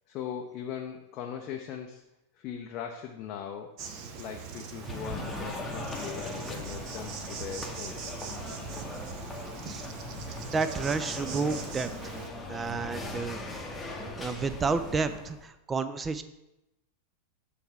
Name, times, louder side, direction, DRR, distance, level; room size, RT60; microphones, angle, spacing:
voice 1, 0.1-2.0 2.4-3.7 4.2-8.2, left 8 dB, 40° left, 2 dB, 0.5 m, -40 dB
Insect, 3.8-12.3, right 6 dB, 40° right, 0.7 m, -41 dB
sound 1, 4.8-15.4, left 2 dB, 10° left, 0.9 m, -39 dB
voice 2, 10.5-11.9 12.5-13.7 14.2-16.2, right 4 dB, 20° right, 11 dB, 0.4 m, -31 dB
7.2 x 3.4 x 5.6 m, 0.92 s
figure-of-eight pair, 90°, 0 cm